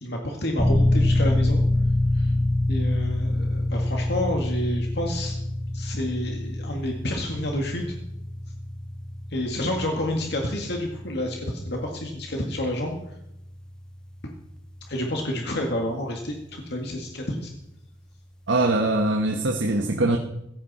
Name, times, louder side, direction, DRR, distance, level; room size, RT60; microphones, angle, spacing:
voice 1, 0.0-1.6 2.1-2.3 2.7-5.3 5.7-7.8 9.3-13.0 14.2-14.3 14.9-17.5, left 1 dB, 60° left, 1 dB, 2.0 m, -29 dB
sound 1, 0.6-15.0, left 1 dB, 5° left, 1.4 m, -27 dB
voice 2, 18.5-20.2, right 2 dB, 80° right, 2 dB, 1.3 m, -22 dB
16.5 x 15.5 x 4.3 m, 0.84 s
head